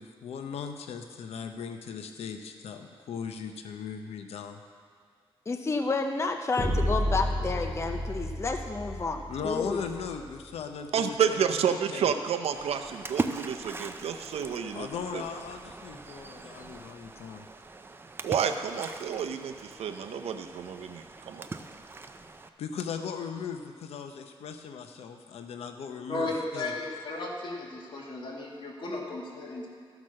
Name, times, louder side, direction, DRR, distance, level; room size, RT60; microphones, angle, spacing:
voice 1, 0.0-4.6 9.3-12.1 14.7-17.4 22.6-26.8, left 6 dB, 90° left, 6 dB, 0.7 m, -38 dB
voice 2, 5.5-9.8, left 3 dB, 25° left, 5 dB, 0.6 m, -30 dB
sound 1, 6.6-10.6, equal, 5° right, 3.4 m, -31 dB
voice 3, 10.9-14.9 15.1-15.2 18.2-21.5, right 7 dB, 85° right, 7 dB, 0.7 m, -30 dB
Splash splatter, 12.5-22.5, right 3 dB, 20° right, 0.5 m, -40 dB
voice 4, 26.1-29.7, left 2 dB, 50° left, -2 dB, 2.1 m, -35 dB
13.5 x 6.0 x 6.4 m, 2.1 s
cardioid pair, 110°, 10 cm